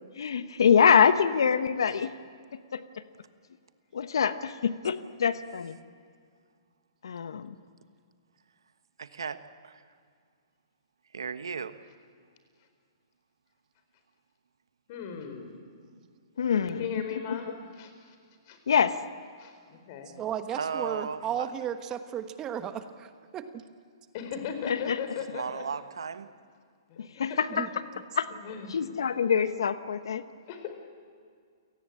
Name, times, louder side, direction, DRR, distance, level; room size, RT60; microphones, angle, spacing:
voice 1, 0.2-2.1 2.5-2.8 3.9-5.8 7.0-7.6 16.4-16.9 17.3-17.4 18.7-19.0 24.7-25.0 27.0-27.7 28.2-28.3 28.7-30.2, left 7 dB, 75° left, 12 dB, 1.0 m, -25 dB
voice 2, 9.0-9.8 11.1-11.8 20.6-21.5 25.2-26.3, right 6 dB, 85° right, 11 dB, 1.3 m, -35 dB
voice 3, 14.9-15.6 16.6-18.1 18.5-18.6 19.4-20.2 24.1-25.6 26.9-27.1 28.4-28.8 30.5-30.7, left 7 dB, 45° left, 7 dB, 4.4 m, -38 dB
voice 4, 20.2-23.5 27.5-27.7, right 9 dB, 25° right, 9 dB, 1.3 m, -34 dB
29.0 x 18.5 x 8.7 m, 2.1 s
hypercardioid pair, 130°, 2 cm